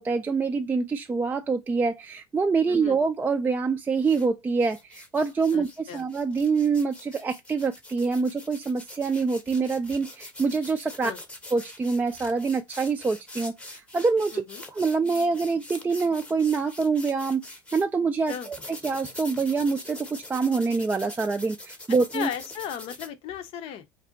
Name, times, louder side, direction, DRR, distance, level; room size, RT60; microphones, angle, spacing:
voice 1, 0.0-11.1 11.5-14.4 14.7-22.3, right 4 dB, 15° right, 0.3 m, -26 dB
voice 2, 2.7-3.0 5.5-6.1 11.0-11.2 14.3-14.6 18.3-18.5 22.1-23.9, left 9 dB, 55° left, 0.6 m, -35 dB
sound 1, 4.0-4.3 4.6-17.8 18.3-23.1, left 1 dB, 10° left, 0.7 m, -44 dB
2.5 x 2.1 x 3.8 m
hypercardioid pair, 85°, 12 cm